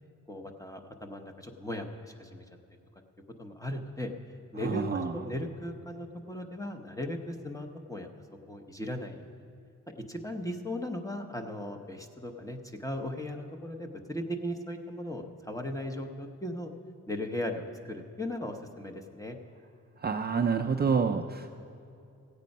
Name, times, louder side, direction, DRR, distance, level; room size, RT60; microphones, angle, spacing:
voice 1, 0.3-2.4 3.4-4.1 4.5-8.1 8.5-9.3 10.0-16.7 17.1-19.4, left 1 dB, 10° left, 3 dB, 0.8 m, -37 dB
voice 2, 4.6-5.1 20.0-21.5, right 5 dB, 30° right, 3 dB, 0.4 m, -28 dB
15.5 x 8.3 x 5.3 m, 2.6 s
wide cardioid pair, 120°, 32 cm